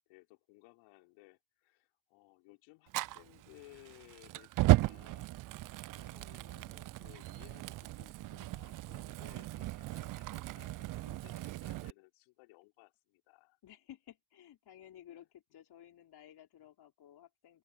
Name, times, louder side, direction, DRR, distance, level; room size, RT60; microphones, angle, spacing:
voice 1, 0.1-5.4 6.0-13.6 15.1-15.3, left 24 dB, 75° left, 5.2 m, -60 dB
Fire, 2.9-11.9, right 17 dB, 45° right, 0.5 m, -35 dB
voice 2, 5.9-6.3 13.6-17.6, left 11 dB, 55° left, 5.0 m, -56 dB
open air
hypercardioid pair, 65°, 48 cm